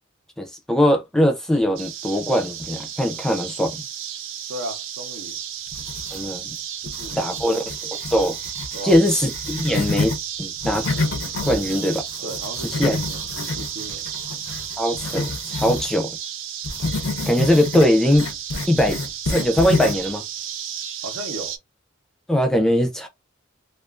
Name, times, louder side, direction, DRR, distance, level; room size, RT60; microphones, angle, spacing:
voice 1, 0.4-3.7 6.1-6.6 7.2-8.4 8.8-10.1 10.4-10.8 11.4-12.0 12.8-13.0 14.8-16.2 17.3-18.3 18.7-19.0 19.3-20.2 22.3-23.1, equal, 5° left, 0.4 m, -20 dB
sound 1, 1.8-21.6, right 9 dB, 75° right, 0.4 m, -33 dB
voice 2, 4.5-5.4 6.8-7.5 8.7-9.0 12.2-13.3 13.6-14.1 21.0-21.6, right 1 dB, 90° right, 0.8 m, -35 dB
sound 2, 5.7-6.5 6.8-10.2 10.6-15.9 16.6-20.1, left 3 dB, 65° left, 0.4 m, -29 dB
2.4 x 2.3 x 2.3 m
head